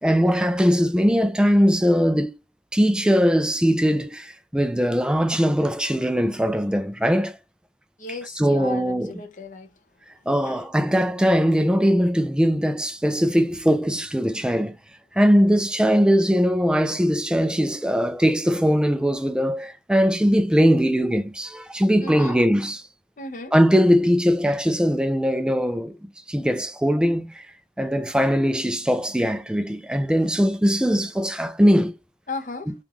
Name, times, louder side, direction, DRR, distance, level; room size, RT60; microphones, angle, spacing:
voice 1, 0.0-2.3 2.7-7.4 8.1-9.2 10.3-14.8 15.1-22.8 23.5-25.9 26.3-27.5 27.8-32.0 32.7-32.8, equal, 5° right, 0.3 m, -20 dB
voice 2, 8.0-9.7 10.4-10.6 22.0-22.4 23.2-23.5 32.3-32.7, left 3 dB, 45° left, 0.8 m, -35 dB
3.6 x 2.4 x 2.9 m
head